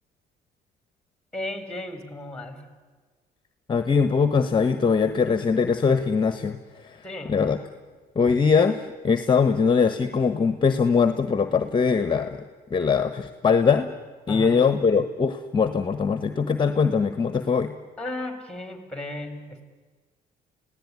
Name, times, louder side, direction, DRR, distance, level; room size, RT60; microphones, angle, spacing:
voice 1, 1.3-2.7 7.0-7.5 14.3-14.7 18.0-19.6, left 1 dB, 5° left, 8 dB, 3.9 m, -35 dB
voice 2, 3.7-7.6 8.1-12.4 12.7-13.9 14.3-17.7, left 5 dB, 30° left, 10 dB, 1.2 m, -22 dB
29.5 x 17.0 x 9.7 m, 1.4 s
cardioid pair, 110°, 17 cm